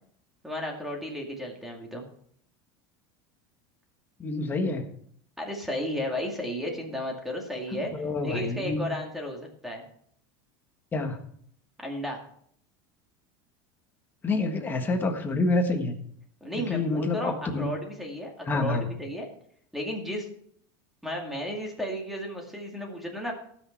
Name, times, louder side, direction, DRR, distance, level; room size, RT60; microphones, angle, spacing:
voice 1, 0.4-2.0 5.4-9.8 11.8-12.2 16.4-19.3 19.7-20.3 21.0-23.3, equal, ahead, 0 dB, 2.2 m, -34 dB
voice 2, 4.2-4.9 7.7-8.9 10.9-11.3 14.2-16.0 16.7-17.7 18.4-18.9, left 2 dB, 15° left, 4 dB, 1.5 m, -28 dB
19.0 x 6.4 x 4.5 m, 0.65 s
supercardioid pair, 160°, 12 cm